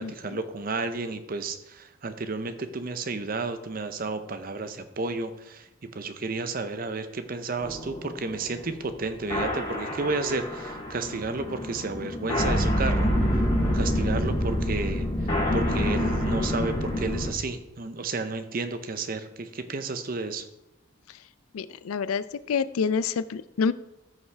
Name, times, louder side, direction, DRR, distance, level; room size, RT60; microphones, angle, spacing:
voice 1, 0.0-13.1 13.7-20.5, right 3 dB, 45° right, 10 dB, 0.6 m, -32 dB
sound 1, 7.6-17.3, equal, 30° left, 3.0 m, -27 dB
voice 2, 21.5-23.7, left 5 dB, 85° left, 15 dB, 0.4 m, -27 dB
14.0 x 5.5 x 3.4 m, 0.89 s
head